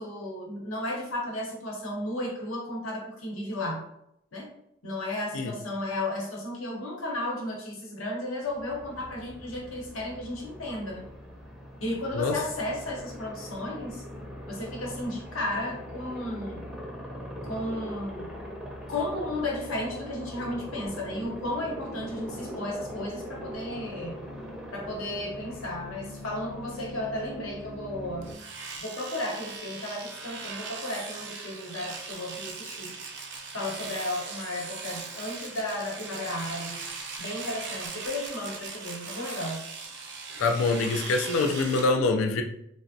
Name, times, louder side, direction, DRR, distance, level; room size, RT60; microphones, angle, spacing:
voice 1, 0.0-3.9 4.3-4.5 4.8-11.1 11.8-14.0 14.5-16.6 17.4-18.3 18.9-24.2 24.7-28.3 28.8-33.0 33.5-36.8 37.2-39.7, left 1 dB, 90° left, -1 dB, 0.9 m, -34 dB
Aircraft, 8.5-28.3, equal, 5° right, 0.6 m, -41 dB
Domestic sounds home sounds, 28.2-41.9, right 4 dB, 60° right, 0.5 m, -39 dB
voice 2, 40.4-42.4, left 3 dB, 75° left, 5 dB, 0.3 m, -25 dB
3.3 x 2.0 x 2.6 m, 0.80 s
head